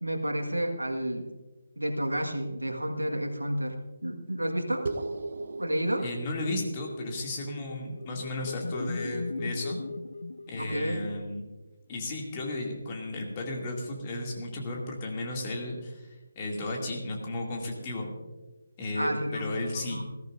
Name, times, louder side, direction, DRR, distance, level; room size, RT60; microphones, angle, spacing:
voice 1, 0.0-1.3 1.8-4.9 5.6-6.1 10.6-11.0 18.9-19.5 19.7-20.1, right 1 dB, 85° right, 4 dB, 1.6 m, -31 dB
sound 1, 4.9-9.6, right 3 dB, 50° right, 0.9 m, -40 dB
voice 2, 6.0-9.8 10.5-11.4 11.9-18.1 18.8-20.0, left 2 dB, 25° left, -1 dB, 2.4 m, -34 dB
sound 2, 7.3-11.3, left 3 dB, 60° left, 0.6 m, -37 dB
20.0 x 14.5 x 2.6 m, 1.2 s
figure-of-eight pair, 150°, 0 cm